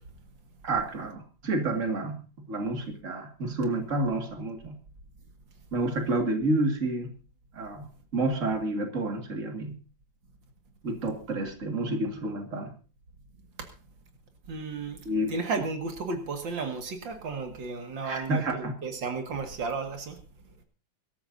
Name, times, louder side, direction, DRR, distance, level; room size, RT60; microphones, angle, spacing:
voice 1, 0.6-4.8 5.7-7.1 7.5-9.8 10.8-12.7 15.1-15.3 18.0-18.7, right 2 dB, 45° right, 4 dB, 2.5 m, -29 dB
voice 2, 14.5-15.0 15.3-20.2, right 4 dB, 85° right, 5 dB, 2.7 m, -33 dB
24.0 x 13.5 x 2.7 m, 0.33 s
omnidirectional pair, 2.0 m